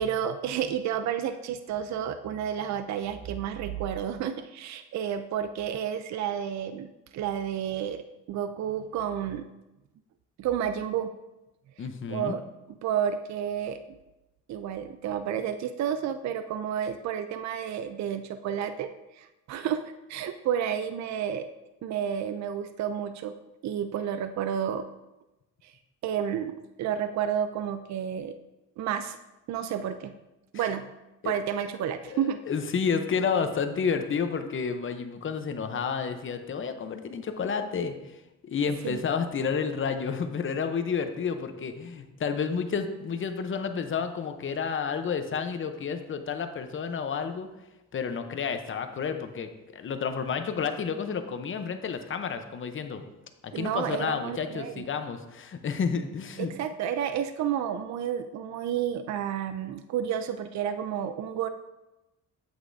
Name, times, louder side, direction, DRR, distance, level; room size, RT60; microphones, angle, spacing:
voice 1, 0.0-8.0 8.3-9.5 10.4-11.1 12.1-12.4 12.7-13.8 14.5-18.9 19.2-21.5 21.8-23.3 23.6-24.9 25.6-25.7 26.0-28.3 28.8-29.2 29.5-30.1 30.5-30.8 31.2-32.4 38.8-39.0 53.5-54.8 56.4-61.5, right 9 dB, 65° right, 10 dB, 0.5 m, -31 dB
voice 2, 11.8-12.3 30.5-30.7 31.2-31.3 32.1-37.9 38.5-47.5 47.9-53.0 53.4-56.5, left 6 dB, 40° left, 8 dB, 0.8 m, -30 dB
8.1 x 8.0 x 2.6 m, 1.0 s
cardioid pair, 90°, 30 cm